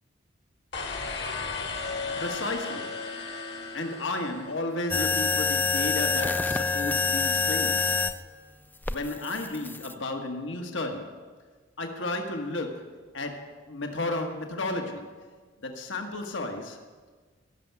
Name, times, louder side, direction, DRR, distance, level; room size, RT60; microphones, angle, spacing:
sound 1, 0.7-4.9, left 4 dB, 60° left, 1.6 m, -35 dB
voice 1, 2.2-3.0 3.7-8.0 8.9-11.3 11.8-15.4 15.6-16.8, left 2 dB, 75° left, 4 dB, 1.4 m, -33 dB
sound 2, 4.9-8.2 8.9-9.9, left 4 dB, 10° left, 0.4 m, -26 dB
16.0 x 6.6 x 8.2 m, 1.5 s
head